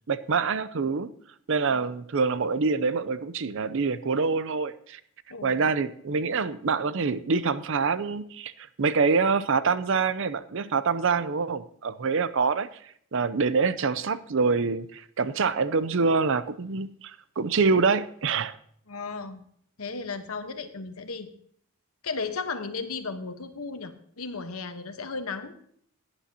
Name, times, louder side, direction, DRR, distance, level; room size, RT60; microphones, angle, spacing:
voice 1, 0.1-1.1 1.5-5.0 5.4-12.7 13.1-18.5, right 4 dB, 60° right, 14 dB, 0.6 m, -25 dB
voice 2, 5.3-5.7 18.9-19.4 19.8-21.3 22.0-25.5, left 4 dB, 80° left, 8 dB, 1.1 m, -35 dB
17.0 x 9.7 x 2.8 m, 0.64 s
head